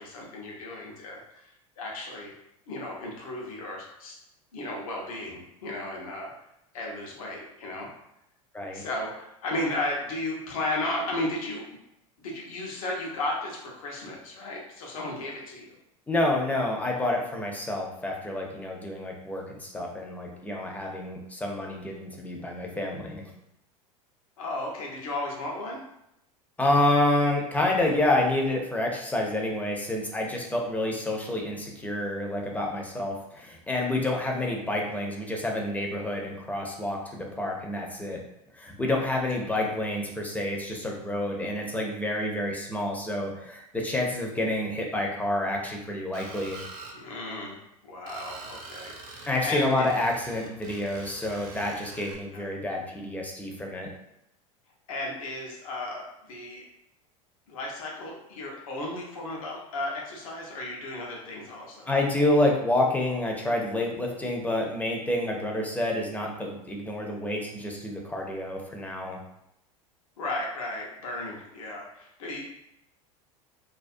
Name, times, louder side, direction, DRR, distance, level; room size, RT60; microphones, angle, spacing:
voice 1, 0.0-1.5 1.8-2.3 2.7-4.2 4.5-6.3 6.7-7.9 8.7-11.6 12.2-15.7 24.4-25.8 46.9-47.6 47.8-49.9 52.3-52.4 54.9-56.6 57.5-61.9 70.2-72.4, left 2 dB, 70° left, -2 dB, 0.7 m, -34 dB
voice 2, 16.1-23.2 26.6-38.2 38.5-46.6 49.3-53.9 61.9-69.2, left 1 dB, 10° left, 0 dB, 0.5 m, -28 dB
Screech, 46.1-47.0 48.1-52.2, right 3 dB, 50° right, 0.7 m, -44 dB
2.3 x 2.2 x 2.5 m, 0.81 s
hypercardioid pair, 80°, 19 cm